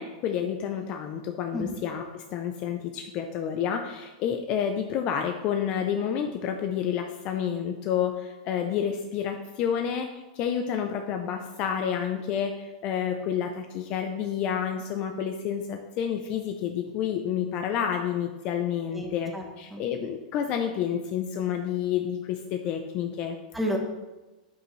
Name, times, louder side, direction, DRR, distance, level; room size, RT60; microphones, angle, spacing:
voice 1, 0.0-23.4, left 8 dB, 30° left, 5 dB, 0.5 m, -29 dB
voice 2, 18.9-19.4 19.7-19.8 23.5-23.8, equal, 5° right, 1 dB, 1.0 m, -31 dB
8.9 x 8.1 x 3.2 m, 1.1 s
supercardioid pair, 170°, 4 cm